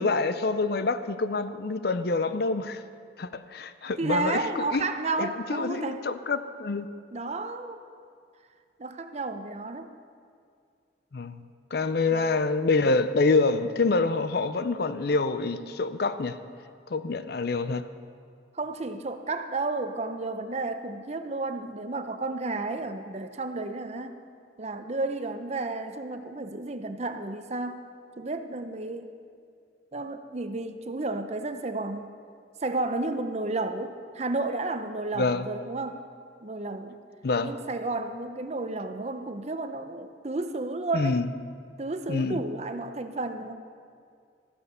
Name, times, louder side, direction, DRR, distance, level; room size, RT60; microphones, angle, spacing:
voice 1, 0.0-2.8 3.2-4.9 5.2-6.9 11.1-11.4 11.7-16.4 16.9-17.8 35.2-35.4 37.2-37.5 40.9-41.3 42.1-42.4, left 3 dB, 55° left, 12 dB, 0.5 m, -26 dB
voice 2, 4.0-6.1 7.1-7.8 8.8-9.9 12.1-12.3 18.5-24.1 24.6-27.8 28.2-29.1 29.9-32.1 32.6-36.0 36.4-37.0 37.4-41.2 41.8-43.5, right 2 dB, 35° right, 8 dB, 0.7 m, -32 dB
14.0 x 9.6 x 6.8 m, 2.2 s
head